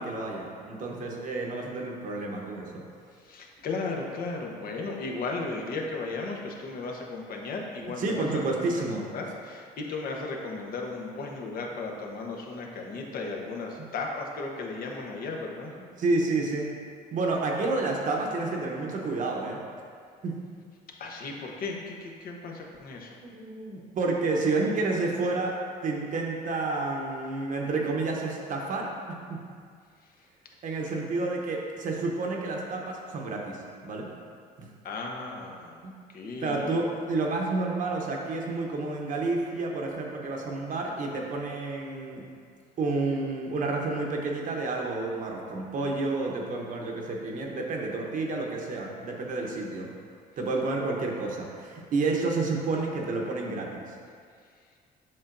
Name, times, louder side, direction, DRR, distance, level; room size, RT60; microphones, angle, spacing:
voice 1, 0.0-2.8 8.0-9.1 16.0-16.7 17.1-19.6 20.2-20.4 23.2-28.9 29.3-29.4 30.6-34.1 34.6-34.7 35.8-35.9 36.4-42.3 42.8-49.9 50.4-53.9, right 3 dB, 50° right, 0 dB, 0.9 m, -30 dB
voice 2, 3.2-8.3 8.7-15.7 21.0-23.2 30.0-30.1 30.8-31.0 34.8-36.8, left 3 dB, 60° left, 0 dB, 1.0 m, -35 dB
7.6 x 5.4 x 2.6 m, 2.1 s
cardioid pair, 110°, 17 cm